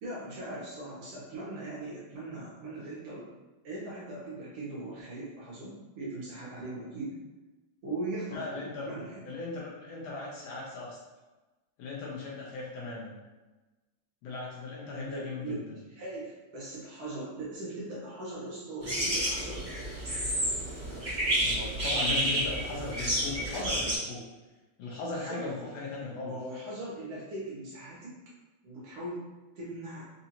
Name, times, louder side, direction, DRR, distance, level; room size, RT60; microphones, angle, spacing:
voice 1, 0.0-3.3 3.6-7.2 7.8-9.3 14.9-15.6 15.9-19.6 25.0-25.4 26.2-28.1 28.6-29.2 29.6-30.1, right 2 dB, 65° right, -7 dB, 1.9 m, -40 dB
voice 2, 8.3-8.9 9.3-11.0 11.8-13.2 14.2-15.8 21.4-24.2 24.8-26.3, left 3 dB, 75° left, -4 dB, 1.7 m, -38 dB
sound 1, 18.8-23.9, right 1 dB, 35° right, 1.5 m, -30 dB
5.1 x 2.6 x 2.8 m, 1.2 s
omnidirectional pair, 3.3 m